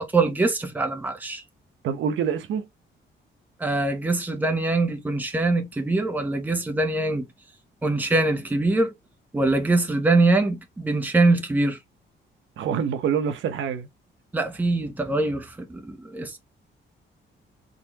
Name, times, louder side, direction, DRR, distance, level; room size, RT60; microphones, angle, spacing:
voice 1, 0.0-1.4 3.6-7.2 7.8-8.9 9.3-11.8 14.3-16.4, right 2 dB, 10° right, 0.8 m, -23 dB
voice 2, 1.8-2.6 12.6-13.9, right 7 dB, 75° right, 0.9 m, -26 dB
4.1 x 3.7 x 2.8 m
cardioid pair, 170°, 20 cm